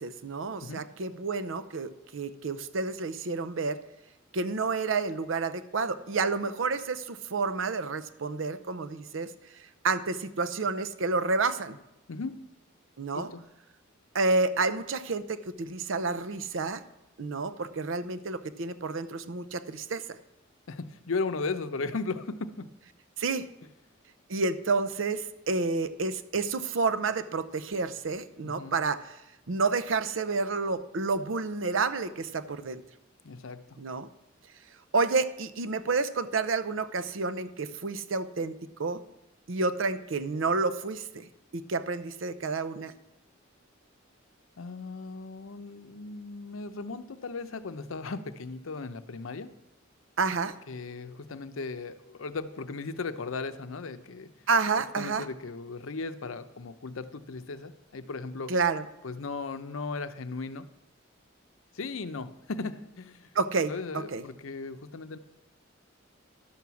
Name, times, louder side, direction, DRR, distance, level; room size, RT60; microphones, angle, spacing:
voice 1, 0.0-3.8 4.3-9.3 9.8-11.8 13.0-13.3 14.1-16.8 17.2-20.2 23.2-23.5 24.3-29.2 29.5-32.8 33.8-34.1 34.9-39.0 39.5-42.9 50.2-50.6 54.5-55.3 58.5-58.9 63.3-64.2, right 4 dB, 70° right, 13 dB, 0.6 m, -30 dB
voice 2, 13.1-13.5 20.7-22.7 28.4-28.8 33.2-33.8 44.6-49.5 50.7-54.3 55.0-58.5 59.0-60.7 61.7-63.3 63.7-65.2, left 3 dB, 80° left, 11 dB, 0.7 m, -36 dB
11.5 x 6.2 x 7.0 m, 0.91 s
head